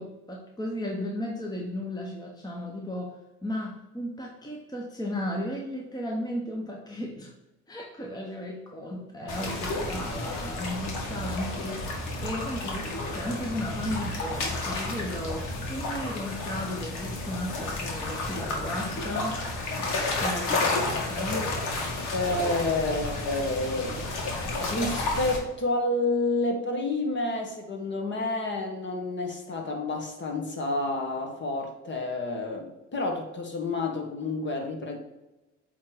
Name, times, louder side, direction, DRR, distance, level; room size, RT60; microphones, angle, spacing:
voice 1, 0.0-7.3 7.7-19.4 20.2-21.5, left 1 dB, 10° left, -1 dB, 1.1 m, -35 dB
sound 1, 9.3-25.4, left 2 dB, 60° left, 1.9 m, -31 dB
voice 2, 22.1-24.0 24.6-35.0, left 2 dB, 35° left, 2 dB, 1.6 m, -29 dB
8.3 x 3.3 x 4.0 m, 1.0 s
hypercardioid pair, 70°, 34 cm